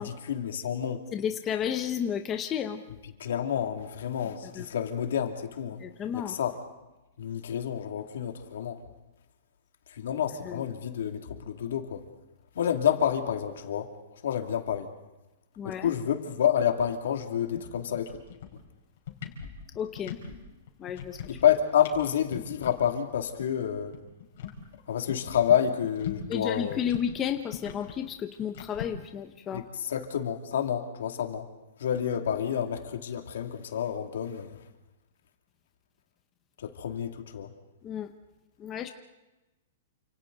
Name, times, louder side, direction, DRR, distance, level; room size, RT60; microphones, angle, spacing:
voice 1, 0.0-1.0 3.2-5.8 6.1-6.6 7.2-8.8 9.9-12.0 12.5-13.9 14.2-14.9 15.6-18.2 21.3-23.9 24.9-26.8 29.5-31.5 31.8-34.5 36.6-37.5, left 9 dB, 75° left, 4 dB, 2.5 m, -29 dB
voice 2, 1.1-2.8 4.5-4.7 5.8-6.4 10.4-10.7 15.6-15.9 19.8-20.1 20.8-21.2 26.3-29.6 37.8-38.1 38.6-38.9, left 8 dB, 15° left, 6 dB, 0.7 m, -32 dB
sound 1, 17.5-17.7 17.9-18.7 19.0-20.4 20.7-21.5 21.8-22.0 22.3-22.8 23.1-23.2 23.4-23.5 23.8-26.4 26.7-28.9, left 10 dB, 50° left, 4.4 m, -40 dB
29.0 x 27.0 x 4.0 m, 1.0 s
hypercardioid pair, 175°, 0 cm